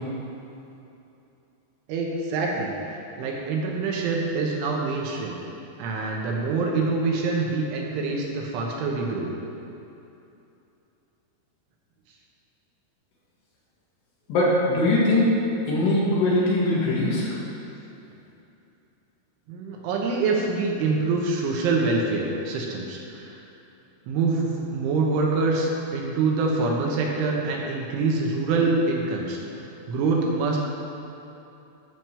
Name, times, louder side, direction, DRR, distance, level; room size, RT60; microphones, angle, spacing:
voice 1, 1.9-2.7 3.2-5.4 5.8-9.3 19.5-23.4 24.1-30.6, right 3 dB, 75° right, -1 dB, 3.3 m, -25 dB
voice 2, 14.3-15.3 15.7-17.3, left 1 dB, 65° left, -6 dB, 3.5 m, -21 dB
13.5 x 5.3 x 6.7 m, 2.8 s
omnidirectional pair, 5.9 m